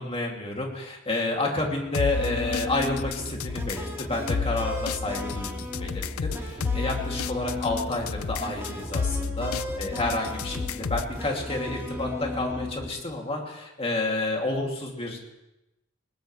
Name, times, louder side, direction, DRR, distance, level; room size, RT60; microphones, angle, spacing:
voice 1, 0.0-15.2, left 2 dB, 30° left, 0 dB, 2.8 m, -30 dB
sound 1, 1.9-11.2, left 6 dB, 75° left, 0.5 m, -32 dB
sound 2, 2.1-12.9, left 1 dB, 10° right, 2.1 m, -35 dB
20.5 x 20.0 x 3.3 m, 0.93 s
head